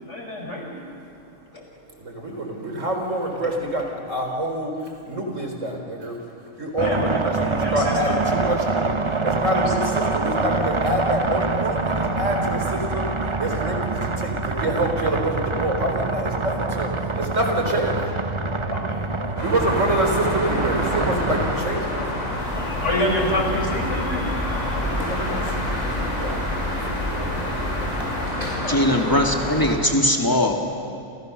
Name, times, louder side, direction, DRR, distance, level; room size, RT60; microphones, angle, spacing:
voice 1, 0.0-0.8 1.5-1.6 2.1-2.2 6.7-7.1 7.6-8.1 9.5-9.6 10.0-10.1 18.7-19.0 22.6-24.2 28.4-28.9, left 1 dB, 60° left, 1 dB, 5.2 m, -28 dB
voice 2, 2.0-4.7 5.1-6.2 6.6-8.9 9.2-16.9 17.2-18.0 19.4-22.2 24.7-26.4 26.8-27.5, right 1 dB, 70° right, 2 dB, 4.4 m, -26 dB
sound 1, 6.8-21.6, right 3 dB, 25° right, 0.9 m, -25 dB
sound 2, 19.4-29.8, left 1 dB, 90° left, 6.0 m, -28 dB
sound 3, 22.4-28.3, left 1 dB, 5° right, 3.6 m, -33 dB
voice 3, 28.7-30.5, left 1 dB, 15° left, 1 dB, 2.5 m, -20 dB
29.5 x 28.0 x 6.8 m, 2.5 s
omnidirectional pair, 1.4 m